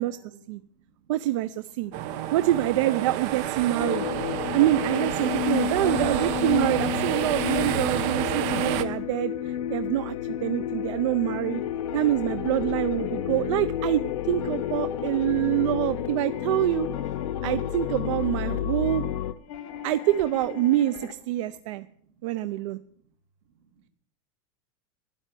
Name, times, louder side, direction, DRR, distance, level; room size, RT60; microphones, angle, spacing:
voice 1, 0.0-1.1 2.6-3.6 5.6-6.5 11.5-12.0 13.0-13.8 14.9-15.0 18.7-19.9 21.3-23.1 23.4-23.9, right 9 dB, 85° right, 5 dB, 2.9 m, -47 dB
voice 2, 1.1-1.9 2.3-4.1 4.5-11.6 11.9-16.9 17.4-19.0 19.8-21.9 22.2-22.8, right 14 dB, 65° right, 14 dB, 0.6 m, -26 dB
sound 1, 1.9-8.8, right 11 dB, 45° right, 1.0 m, -30 dB
sound 2, 3.8-19.3, left 10 dB, 85° left, 0.8 m, -31 dB
sound 3, 11.2-21.1, left 7 dB, 65° left, 2.7 m, -41 dB
12.5 x 10.0 x 7.6 m, 0.65 s
supercardioid pair, 165°, 17 cm